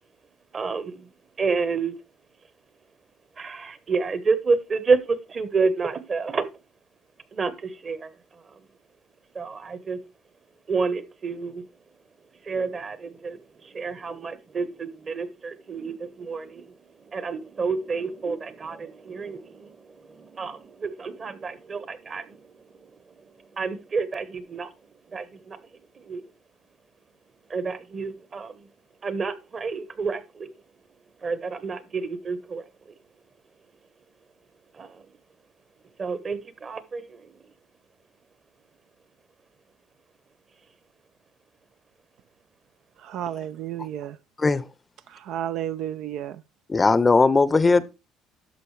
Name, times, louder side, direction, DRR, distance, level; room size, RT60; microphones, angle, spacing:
voice 1, 0.5-1.1 1.4-1.9 3.4-6.5 7.3-8.1 9.3-10.0 10.7-11.6 12.5-13.4 13.7-16.6 17.1-19.7 20.3-22.4 23.6-24.7 25.1-25.6 26.1-26.2 27.5-28.5 29.0-30.5 31.2-32.6 34.8-34.9 36.0-37.2, right 4 dB, 35° right, 1.1 m, -29 dB
voice 2, 43.0-44.2 45.1-46.4, right 11 dB, 65° right, 0.4 m, -32 dB
voice 3, 46.7-47.9, left 3 dB, 20° left, 0.6 m, -19 dB
11.5 x 6.3 x 3.3 m
supercardioid pair, 90°, 0 cm